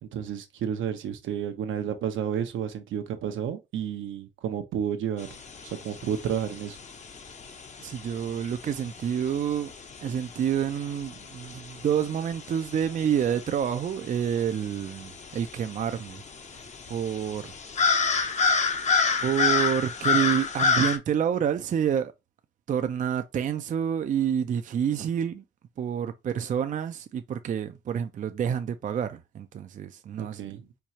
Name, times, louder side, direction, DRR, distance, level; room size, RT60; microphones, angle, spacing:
voice 1, 0.0-5.3 5.8-6.8 30.2-30.6, right 9 dB, 75° right, 0.8 m, -31 dB
sound 1, 5.2-21.0, left 5 dB, 35° left, 0.6 m, -30 dB
voice 2, 7.8-9.7 10.0-16.2 16.5-16.6 16.9-17.5 19.2-22.1 22.7-25.4 25.8-30.6, right 8 dB, 40° right, 0.4 m, -28 dB
4.5 x 2.3 x 2.8 m
cardioid pair, 90°, 20 cm